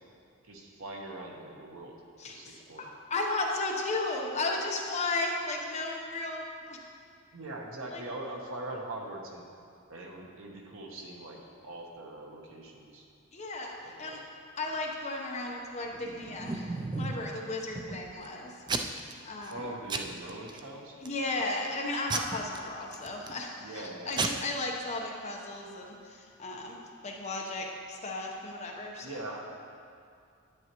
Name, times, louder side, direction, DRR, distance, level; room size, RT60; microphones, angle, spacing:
voice 1, 0.5-2.0 2.2-2.9 7.3-9.4 9.9-13.1 13.8-14.2 19.5-21.0 23.6-24.2 29.0-29.5, right 1 dB, 70° right, 0 dB, 1.1 m, -42 dB
voice 2, 2.2-6.8 7.9-8.0 13.3-14.2 14.6-16.7 17.0-18.6 19.2-19.6 21.0-26.8 27.0-29.2, left 2 dB, 35° left, 0 dB, 0.9 m, -35 dB
Packing tape duct tape / Tearing, 15.9-17.3 17.8-18.3 18.7-19.1 19.4-19.6 19.9-20.6 21.1-21.4 22.1-23.4 23.8-23.9 24.1-24.3, right 4 dB, 20° right, 0.3 m, -34 dB
9.8 x 9.1 x 3.0 m, 2.3 s
head